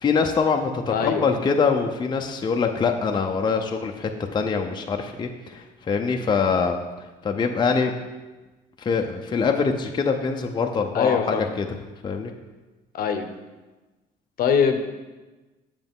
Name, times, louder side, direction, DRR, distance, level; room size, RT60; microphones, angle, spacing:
voice 1, 0.0-6.8 7.2-7.9 8.8-11.7 12.0-12.3, left 5 dB, 25° left, 3 dB, 0.6 m, -24 dB
voice 2, 0.9-1.2 10.9-11.4 12.9-13.3 14.4-14.8, left 7 dB, 60° left, 7 dB, 0.8 m, -22 dB
7.8 x 6.8 x 3.6 m, 1.2 s
cardioid pair, 110°, 17 cm